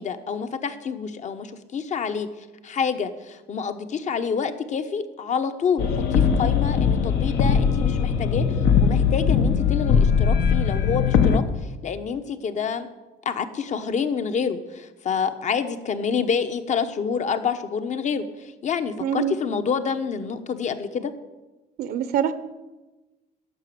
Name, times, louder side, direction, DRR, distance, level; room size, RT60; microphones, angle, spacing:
voice 1, 0.0-2.3 2.6-12.9 13.2-21.1, left 6 dB, 45° left, 10 dB, 1.0 m, -27 dB
sound 1, 5.8-11.4, left 6 dB, 75° left, 1.3 m, -20 dB
voice 2, 19.0-19.3 21.8-22.3, right 9 dB, 65° right, 13 dB, 0.8 m, -24 dB
11.5 x 6.8 x 9.4 m, 1.1 s
cardioid pair, 110°, 17 cm